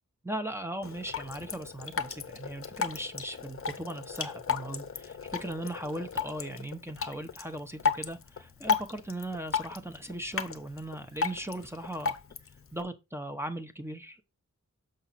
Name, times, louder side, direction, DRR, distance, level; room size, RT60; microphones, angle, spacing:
voice 1, 0.2-12.2 12.7-14.2, right 1 dB, 10° right, 0.9 m, -38 dB
Drip, 0.8-12.8, left 6 dB, 45° left, 0.7 m, -35 dB
7.1 x 5.2 x 4.0 m
wide cardioid pair, 95°, 30 cm